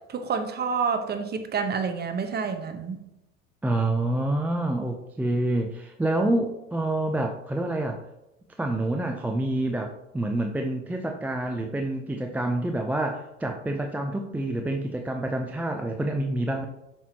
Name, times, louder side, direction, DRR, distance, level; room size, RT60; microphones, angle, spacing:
voice 1, 0.1-3.0, right 5 dB, 25° right, 7 dB, 1.0 m, -28 dB
voice 2, 3.6-8.0 8.6-16.7, right 1 dB, 5° right, 3 dB, 0.4 m, -27 dB
7.2 x 6.2 x 2.8 m, 0.91 s
hypercardioid pair, 95°, 39 cm